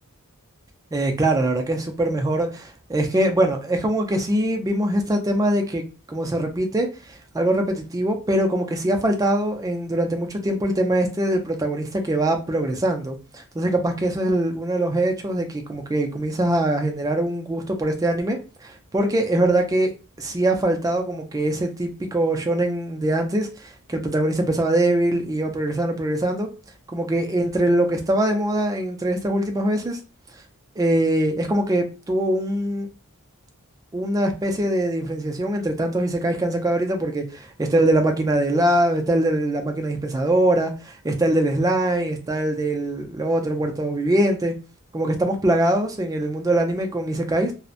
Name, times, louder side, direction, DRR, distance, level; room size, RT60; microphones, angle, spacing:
voice 1, 0.9-5.8 6.1-19.9 20.2-26.5 26.9-30.0 30.8-32.9 33.9-44.5 44.9-47.5, right 1 dB, 15° right, 0.3 m, -23 dB
2.7 x 2.0 x 2.4 m
head